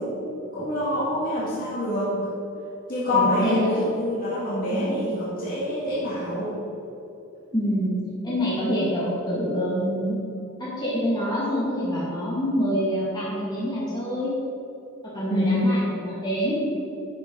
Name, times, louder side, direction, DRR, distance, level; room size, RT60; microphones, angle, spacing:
voice 1, 0.0-2.3 2.9-6.5 15.3-15.7, left 1 dB, 45° left, -9 dB, 2.1 m, -26 dB
voice 2, 3.1-3.8 4.7-5.0 7.5-7.9 8.2-10.2 10.6-14.3 15.0-16.6, equal, 20° left, -8 dB, 2.3 m, -26 dB
10.5 x 8.9 x 4.0 m, 2.9 s
head